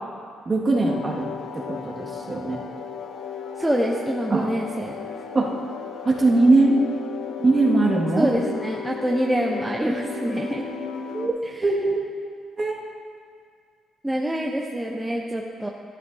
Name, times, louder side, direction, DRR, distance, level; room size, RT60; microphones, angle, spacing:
voice 1, 0.5-1.3 1.5-2.6 4.3-4.5 5.3-5.5 6.1-6.8 7.4-8.3 11.1-11.4 11.6-12.1 12.6-12.8, right 2 dB, 30° right, -3 dB, 1.9 m, -20 dB
sound 1, 0.9-11.3, left 6 dB, 80° left, 0.8 m, -35 dB
voice 2, 3.6-4.9 8.1-10.6 11.4-11.7 14.0-15.7, equal, 5° right, -1 dB, 0.8 m, -26 dB
13.0 x 12.0 x 2.8 m, 2.1 s
cardioid pair, 90°, 0 cm